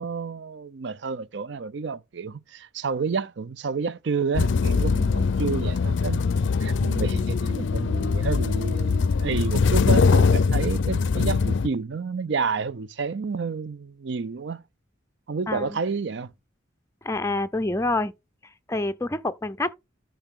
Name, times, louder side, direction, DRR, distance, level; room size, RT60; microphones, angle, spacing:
voice 1, 0.0-6.3 6.6-14.6 15.3-16.3, right 5 dB, 60° right, 0.5 m, -30 dB
sound 1, 4.3-11.7, left 4 dB, 65° left, 0.4 m, -22 dB
voice 2, 15.5-15.8 17.0-18.1 18.4-19.7, left 2 dB, 15° left, 0.5 m, -27 dB
13.5 x 4.5 x 3.7 m
head